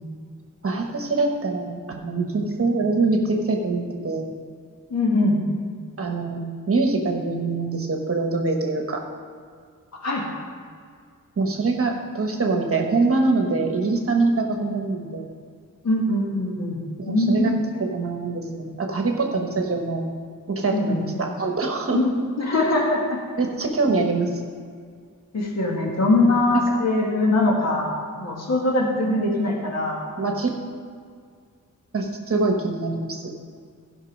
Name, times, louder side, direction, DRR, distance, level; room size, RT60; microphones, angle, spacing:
voice 1, 0.6-4.3 6.0-6.4 6.7-9.0 11.4-15.3 17.0-20.0 20.5-22.0 23.4-24.4 30.2-30.5 31.9-33.3, right 3 dB, 45° right, 2 dB, 1.1 m, -24 dB
voice 2, 4.9-5.4 10.0-10.3 15.8-17.6 20.7-21.0 21.9-22.1 22.4-23.2 25.3-30.0, left 2 dB, 55° left, -2 dB, 1.8 m, -22 dB
15.5 x 5.4 x 5.3 m, 2.1 s
wide cardioid pair, 175°, 33 cm